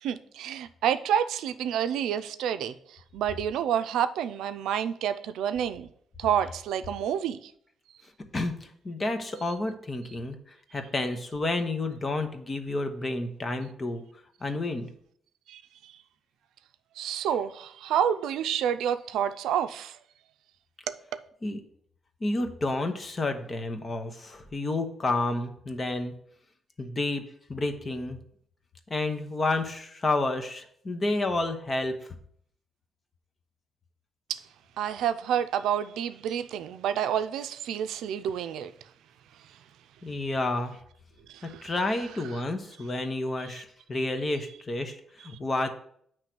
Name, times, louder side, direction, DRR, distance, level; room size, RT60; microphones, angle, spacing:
voice 1, 0.0-5.9 6.2-7.5 15.5-16.0 17.0-20.0 20.9-21.2 34.3-34.4 34.8-38.7 39.4-39.6 41.3-41.7 43.4-43.6, right 9 dB, 90° right, 0.4 m, -29 dB
voice 2, 8.3-10.4 10.7-14.0 14.4-14.9 21.4-21.6 22.2-26.1 26.8-27.2 27.5-28.2 28.9-31.9 40.0-40.8 41.6-45.7, left 2 dB, 35° left, 1.0 m, -30 dB
8.9 x 3.2 x 6.0 m
cardioid pair, 85°, 0 cm